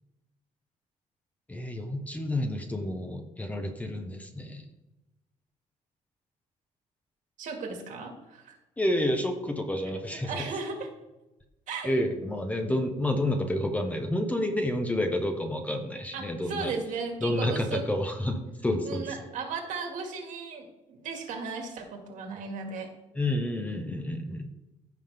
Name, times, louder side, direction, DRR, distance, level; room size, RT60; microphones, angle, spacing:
voice 1, 1.5-4.6 8.8-10.5 11.8-16.7 17.2-19.0 23.1-24.5, left 1 dB, 10° left, 5 dB, 0.8 m, -29 dB
voice 2, 7.4-8.6 10.2-10.9 11.7-11.9 16.1-17.8 18.8-22.9, right 4 dB, 70° right, 3 dB, 2.0 m, -36 dB
15.0 x 5.6 x 3.5 m, 0.98 s
cardioid pair, 165°, 14 cm